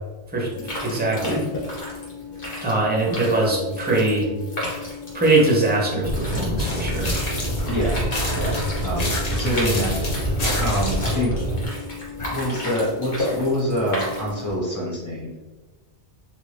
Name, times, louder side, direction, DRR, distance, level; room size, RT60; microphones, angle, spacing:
voice 1, 0.3-1.5 2.6-4.3 5.1-7.1, right 2 dB, 10° right, -3 dB, 0.6 m, -22 dB
sound 1, 0.5-14.5, left 2 dB, 55° left, 1.2 m, -33 dB
sound 2, 6.0-11.7, right 1 dB, 75° left, 1.4 m, -26 dB
sound 3, 6.6-7.7 8.1-11.1, left 2 dB, 40° left, 0.8 m, -30 dB
voice 2, 7.7-8.0 8.3-9.9 10.2-11.3 12.2-15.3, equal, 20° left, -7 dB, 1.1 m, -26 dB
3.0 x 2.5 x 3.3 m, 1.2 s
omnidirectional pair, 1.1 m